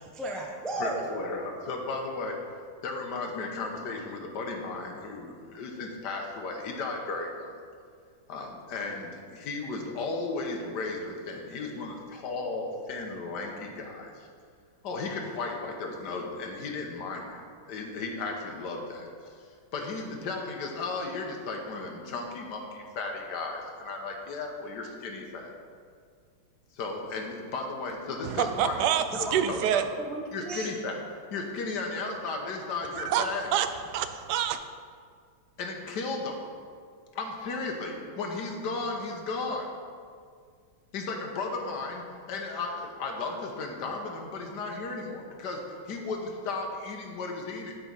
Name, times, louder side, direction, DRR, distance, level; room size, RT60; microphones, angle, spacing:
voice 1, 0.0-1.1 29.1-29.3 30.0-30.7, right 1 dB, ahead, -1 dB, 0.5 m, -34 dB
voice 2, 0.8-7.5 8.3-14.3 14.8-25.5 26.7-28.8 29.2-29.8 30.3-33.5 35.6-36.4 37.1-39.7 40.9-47.8, left 3 dB, 60° left, 2 dB, 1.6 m, -35 dB
voice 3, 28.2-29.8 33.0-34.6, right 10 dB, 70° right, 9 dB, 1.0 m, -27 dB
8.7 x 5.4 x 6.1 m, 2.1 s
omnidirectional pair, 2.1 m